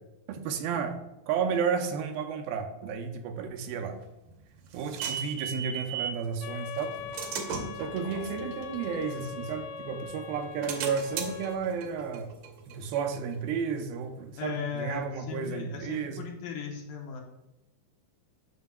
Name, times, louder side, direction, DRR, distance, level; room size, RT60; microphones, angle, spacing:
voice 1, 0.3-1.0 1.3-4.0 4.7-7.0 7.8-12.3 12.7-16.2, right 6 dB, 85° right, 5 dB, 2.4 m, -32 dB
sound 1, 4.0-6.2 6.8-9.9 10.3-13.7, right 6 dB, 70° right, 1.9 m, -38 dB
sound 2, 6.4-11.6, left 8 dB, 90° left, 2.4 m, -41 dB
voice 2, 14.4-17.2, left 6 dB, 75° left, 0 dB, 2.2 m, -37 dB
9.3 x 6.2 x 2.2 m, 0.95 s
omnidirectional pair, 4.2 m